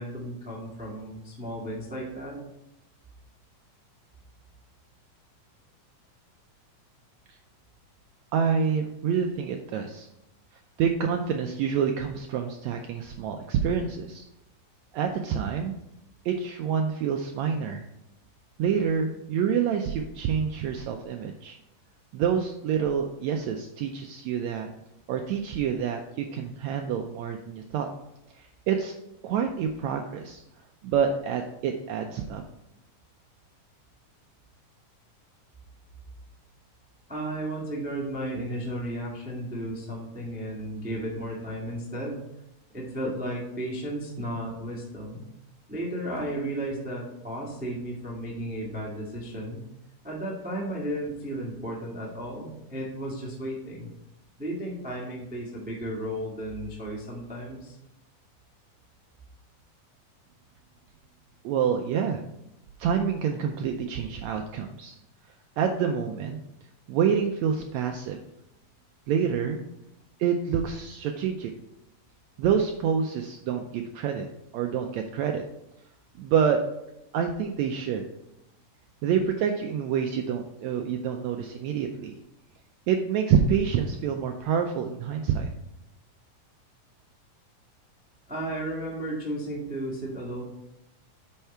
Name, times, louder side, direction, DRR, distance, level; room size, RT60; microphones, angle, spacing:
voice 1, 0.0-2.4 37.1-42.2 42.7-45.3 45.7-49.6 50.0-53.9 54.4-57.8 88.3-90.4, right 1 dB, 10° right, -4 dB, 0.5 m, -34 dB
voice 2, 8.3-10.1 10.8-14.2 14.9-15.7 16.2-17.9 18.6-21.6 22.1-24.7 25.1-27.9 28.3-28.9 29.2-30.4 30.8-32.4 61.4-62.2 62.8-64.9 65.6-66.4 66.9-68.2 69.1-69.6 70.2-71.5 72.4-74.3 74.5-75.4 76.2-76.6 77.1-78.0 79.0-82.1 82.9-85.5, right 7 dB, 90° right, 4 dB, 1.5 m, -27 dB
9.1 x 4.6 x 4.4 m, 0.86 s
omnidirectional pair, 3.8 m